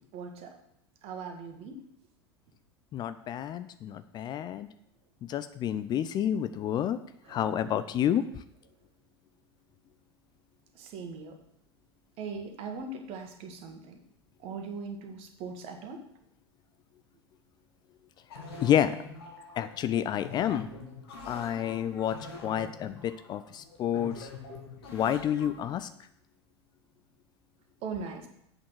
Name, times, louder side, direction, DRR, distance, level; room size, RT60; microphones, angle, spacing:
voice 1, 0.1-0.6 1.0-1.8 7.2-7.6 10.7-11.4 12.2-14.0 14.4-16.0 27.8-28.3, right 4 dB, 45° right, 5 dB, 1.6 m, -40 dB
voice 2, 2.9-4.7 5.3-7.0 7.3-8.2 18.6-19.0 19.6-20.7 21.3-24.3 24.9-25.9, left 10 dB, 30° left, 12 dB, 0.5 m, -29 dB
sound 1, 18.3-25.8, left 3 dB, 65° left, 2.0 m, -45 dB
7.9 x 6.3 x 6.1 m, 0.75 s
figure-of-eight pair, 80°, 14 cm